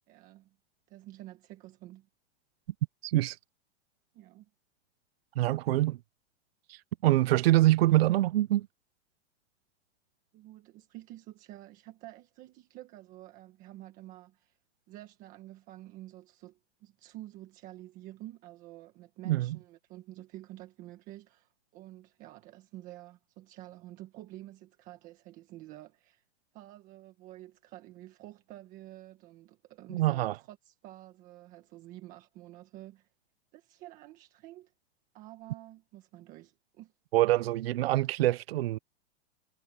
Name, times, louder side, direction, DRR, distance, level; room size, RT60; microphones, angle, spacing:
voice 1, 0.1-0.5 0.9-2.1 4.1-4.5 10.3-14.6 14.9-26.2 26.5-33.1 33.5-34.7 35.1-36.9, right 15 dB, 20° right, 1.5 m, -49 dB
voice 2, 3.0-3.4 5.4-6.0 6.7-8.7 19.2-19.6 29.9-30.3 37.1-38.8, right 16 dB, 55° right, 0.5 m, -25 dB
supercardioid pair, 170°, 36 cm